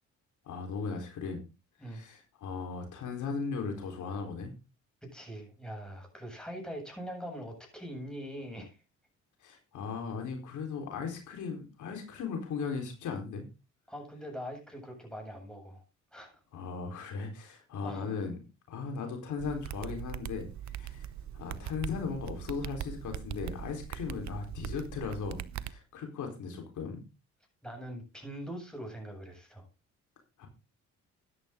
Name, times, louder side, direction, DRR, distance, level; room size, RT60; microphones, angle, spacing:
voice 1, 0.4-1.4 1.8-4.5 9.4-13.4 16.5-18.3 18.7-21.1 21.4-27.0 30.4-30.5, left 5 dB, 75° left, 4 dB, 4.4 m, -37 dB
voice 2, 5.0-8.8 13.9-15.8 16.1-16.4 17.8-18.1 27.6-29.6, equal, ahead, 2 dB, 8.0 m, -42 dB
sound 1, 19.4-25.7, right 10 dB, 65° right, 0.9 m, -41 dB
13.5 x 10.5 x 3.9 m, 0.29 s
cardioid pair, 90°, 30 cm